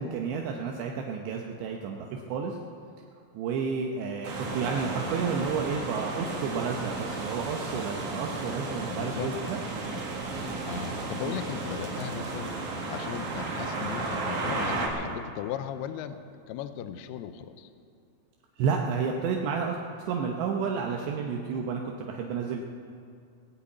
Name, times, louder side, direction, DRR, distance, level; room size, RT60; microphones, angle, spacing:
voice 1, 0.0-2.6 3.3-9.6 18.6-22.6, right 5 dB, 80° right, 1 dB, 2.9 m, -31 dB
sound 1, 4.2-14.9, right 3 dB, 55° right, 2.7 m, -33 dB
voice 2, 8.9-9.3 10.7-12.6 12.9-17.7, left 10 dB, 85° left, 9 dB, 2.3 m, -37 dB
18.5 x 8.4 x 8.4 m, 2.5 s
omnidirectional pair, 5.1 m